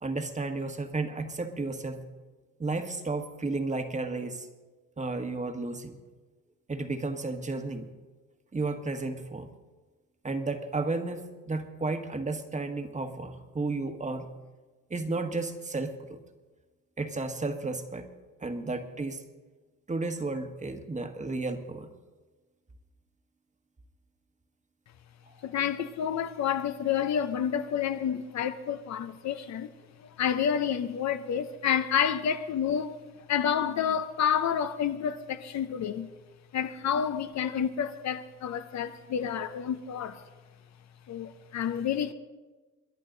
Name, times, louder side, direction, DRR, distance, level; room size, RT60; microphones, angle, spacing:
voice 1, 0.0-2.1 2.6-4.5 5.0-6.0 6.7-7.9 8.5-9.5 10.2-14.3 14.9-16.2 17.0-18.1 18.4-19.2 19.9-21.9 36.9-37.0, right 3 dB, 25° right, 1.3 m, -33 dB
voice 2, 25.4-29.7 30.2-32.9 33.3-36.1 36.5-40.2 41.1-42.1, left 8 dB, 65° left, 0.8 m, -29 dB
22.5 x 10.5 x 3.9 m
cardioid pair, 90°, 30 cm